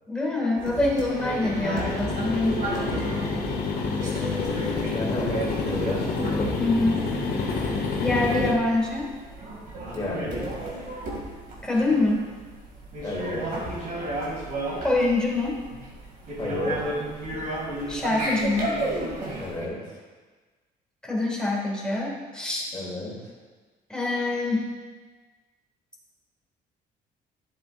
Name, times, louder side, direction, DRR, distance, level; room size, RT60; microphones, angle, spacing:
voice 1, 0.1-2.6 6.6-7.1 8.0-9.1 11.6-12.2 14.8-15.6 17.9-18.8 21.0-22.7 23.9-24.7, left 2 dB, 5° left, -3 dB, 2.1 m, -25 dB
sound 1, 0.6-19.7, right 1 dB, 55° right, 2.3 m, -33 dB
sound 2, 1.1-8.5, left 4 dB, 65° left, 1.8 m, -28 dB
voice 2, 2.7-3.2 4.0-6.5 9.9-10.5 13.0-13.6 16.4-16.9 19.4-20.0 22.7-23.1, left 1 dB, 25° left, -4 dB, 2.9 m, -33 dB
11.5 x 7.6 x 2.5 m, 1.3 s
cardioid pair, 110°, 17 cm